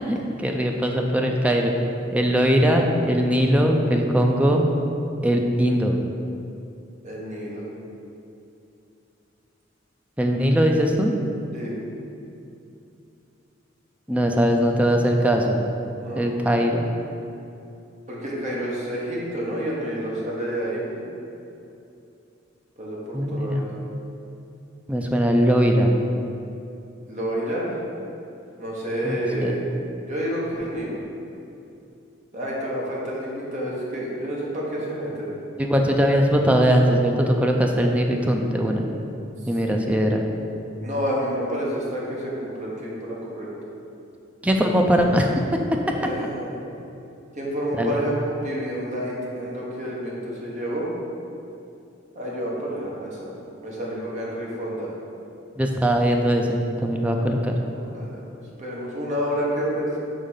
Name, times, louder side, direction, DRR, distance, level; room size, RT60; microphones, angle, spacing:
voice 1, 0.0-1.7 2.1-4.7 5.2-5.9 10.2-11.1 14.1-15.6 16.2-16.9 23.1-23.7 24.9-25.9 29.0-29.6 35.6-38.8 39.5-40.3 44.4-45.4 45.9-46.0 47.8-48.0 55.6-57.5, equal, 5° right, 2 dB, 0.4 m, -20 dB
voice 2, 7.0-7.7 11.5-11.8 16.0-16.2 18.1-21.0 22.8-23.6 27.1-27.8 28.6-29.6 30.1-31.0 32.3-35.3 39.7-39.8 40.8-43.5 46.0-46.6 47.3-50.9 52.1-53.3 53.6-54.9 57.8-58.2 58.6-60.0, equal, 40° right, -5 dB, 1.2 m, -29 dB
5.2 x 3.7 x 5.6 m, 2.7 s
head